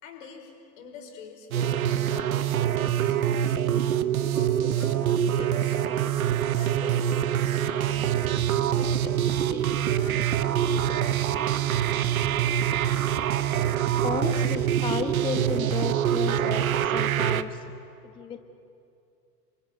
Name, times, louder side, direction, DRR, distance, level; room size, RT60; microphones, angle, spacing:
voice 1, 0.0-3.8 4.3-6.0 6.5-11.2, left 5 dB, 50° left, 4 dB, 5.2 m, -45 dB
sound 1, 1.5-17.4, right 10 dB, 55° right, 1.0 m, -25 dB
sound 2, 7.9-15.2, right 3 dB, 5° right, 1.5 m, -43 dB
voice 2, 14.0-17.6 18.2-18.4, left 6 dB, 10° left, 9 dB, 0.6 m, -32 dB
29.0 x 24.0 x 7.9 m, 2.6 s
figure-of-eight pair, 95°, 49 cm